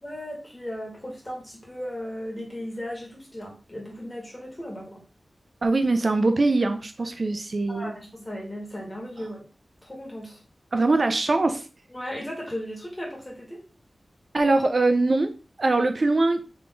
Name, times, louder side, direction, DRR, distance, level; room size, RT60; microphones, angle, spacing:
voice 1, 0.0-5.0 7.7-9.4 9.8-10.4 11.9-13.6, equal, 20° left, -1 dB, 1.9 m, -36 dB
voice 2, 5.6-7.9 10.7-11.6 14.3-15.3 15.6-16.4, right 2 dB, 50° right, 7 dB, 0.4 m, -22 dB
3.7 x 3.4 x 3.8 m, 0.35 s
wide cardioid pair, 105°, 0 cm